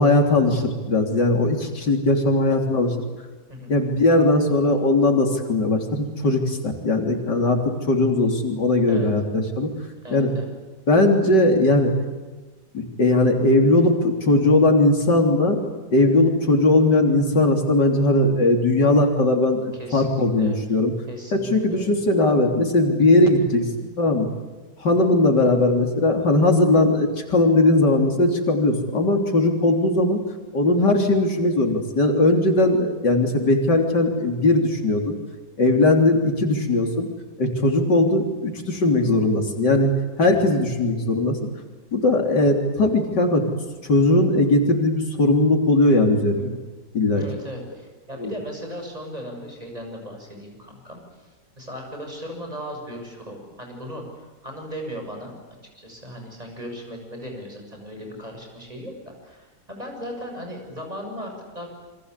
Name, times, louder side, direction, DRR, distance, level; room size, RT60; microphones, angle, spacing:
voice 1, 0.0-3.0 3.7-7.6 7.9-9.7 10.1-10.3 10.9-11.9 12.7-15.6 15.9-20.9 21.3-24.3 24.8-30.2 30.5-35.2 35.6-37.1 37.4-39.9 40.2-41.4 41.9-43.4 43.8-46.6 46.9-47.2 48.2-48.3, left 2 dB, 80° left, 4 dB, 4.1 m, -19 dB
voice 2, 10.0-10.5 19.7-20.8 21.1-22.0 46.3-46.6 47.1-51.3 51.6-55.3 55.7-61.7, equal, 20° right, 2 dB, 7.7 m, -37 dB
28.5 x 25.0 x 8.4 m, 1.2 s
omnidirectional pair, 1.8 m